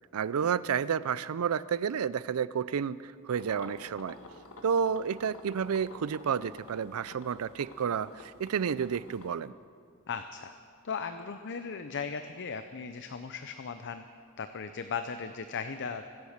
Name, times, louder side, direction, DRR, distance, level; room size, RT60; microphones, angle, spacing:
voice 1, 0.1-4.2 4.6-9.5, right 7 dB, 75° right, 18 dB, 0.4 m, -30 dB
sound 1, 3.3-9.3, left 2 dB, 75° left, 1.7 m, -50 dB
voice 2, 10.1-10.5 10.8-14.0 14.4-16.1, left 5 dB, 55° left, 9 dB, 0.6 m, -37 dB
24.0 x 8.3 x 6.6 m, 2.4 s
head